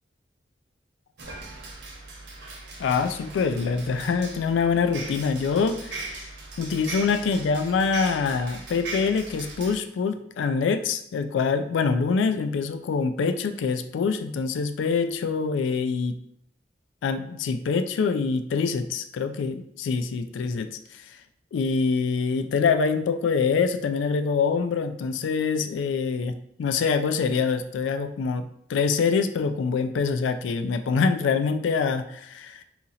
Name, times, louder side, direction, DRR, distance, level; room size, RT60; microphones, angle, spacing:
sound 1, 1.2-9.8, right 3 dB, 70° right, 0.8 m, -39 dB
voice 1, 2.8-6.3 6.6-16.2 17.0-21.0 21.5-32.6, left 5 dB, 85° left, 9 dB, 0.3 m, -25 dB
2.8 x 2.7 x 3.9 m, 0.70 s
head